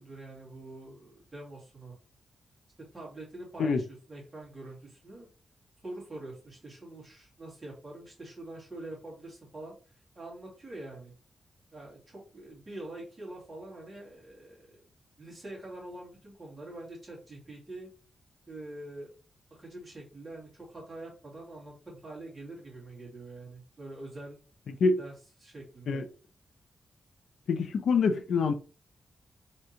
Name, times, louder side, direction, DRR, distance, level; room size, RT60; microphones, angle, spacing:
voice 1, 0.0-2.0 2.9-5.3 5.8-11.1 11.7-14.8 15.2-17.9 18.5-19.1 19.5-24.4 25.0-25.1 25.4-26.0, right 2 dB, 20° right, 2.2 m, -45 dB
voice 2, 27.5-28.5, left 4 dB, 80° left, 0.6 m, -25 dB
4.6 x 3.5 x 2.8 m
wide cardioid pair, 160°, 0 cm